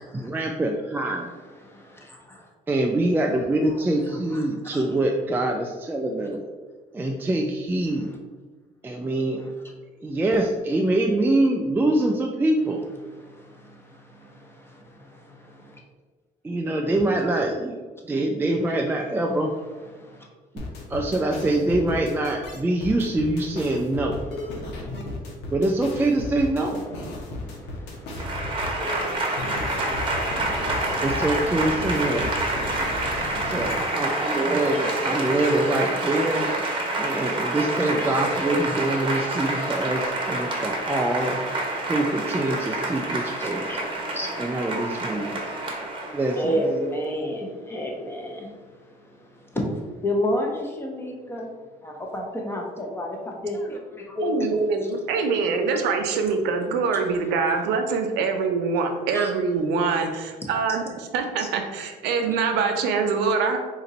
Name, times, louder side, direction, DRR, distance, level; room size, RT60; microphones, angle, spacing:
voice 1, 0.1-1.3 2.7-6.4 6.9-8.1 8.8-9.4 10.0-12.8 16.4-17.7 18.1-19.5 20.9-24.2 25.5-26.8 31.0-32.3 33.5-36.5 37.0-41.4 41.9-43.7 44.4-45.5 46.1-46.6, right 1 dB, 10° right, 0 dB, 0.3 m, -24 dB
voice 2, 1.1-2.5 3.6-3.8 4.0-4.9 6.2-6.3 7.9-8.2 9.4-9.5 13.0-15.8 16.9-17.2 19.0-19.1 19.8-20.3 24.1-24.9 26.9-30.8 40.0-40.2 43.4-45.6 46.4-51.5 51.8-54.5 54.8-54.9 56.9-57.0 58.8-58.9 59.1-59.3 60.7-60.8 61.4-61.5, equal, 15° left, 0 dB, 0.8 m, -33 dB
sound 1, 20.6-34.1, left 2 dB, 85° left, 0.9 m, -35 dB
Applause / Crowd, 28.1-46.7, right 2 dB, 30° right, 0.9 m, -28 dB
voice 3, 54.2-63.6, right 5 dB, 90° right, 5 dB, 0.6 m, -24 dB
3.9 x 2.5 x 4.1 m, 1.4 s
cardioid pair, 110°, 17 cm